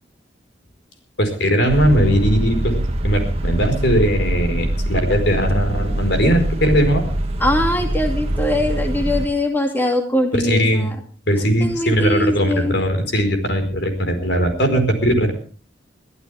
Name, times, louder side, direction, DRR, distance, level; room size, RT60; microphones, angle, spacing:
voice 1, 1.2-7.1 10.4-10.9 11.3-15.3, equal, 65° left, 6 dB, 4.7 m, -19 dB
sound 1, 1.7-9.3, right 1 dB, 35° right, 2.0 m, -23 dB
voice 2, 7.4-11.0 11.6-12.7, left 1 dB, 10° left, 2 dB, 2.6 m, -21 dB
23.5 x 15.0 x 3.5 m, 0.40 s
head